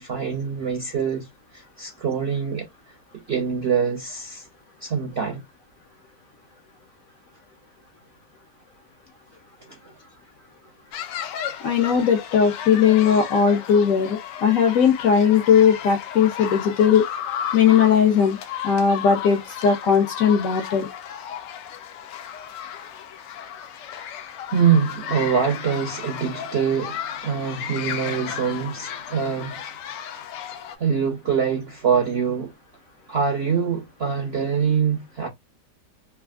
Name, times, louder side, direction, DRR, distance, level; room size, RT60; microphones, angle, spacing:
voice 1, 0.0-2.7 3.3-4.5 4.8-5.4 9.7-9.8 24.5-29.6 30.8-32.5 33.1-35.3, right 7 dB, 65° right, 0.6 m, -24 dB
sound 1, 10.9-30.8, left 9 dB, 85° left, 1.2 m, -34 dB
voice 2, 11.6-17.1 17.5-18.4 18.6-20.9, left 7 dB, 70° left, 0.8 m, -18 dB
3.3 x 2.4 x 2.2 m
omnidirectional pair, 1.9 m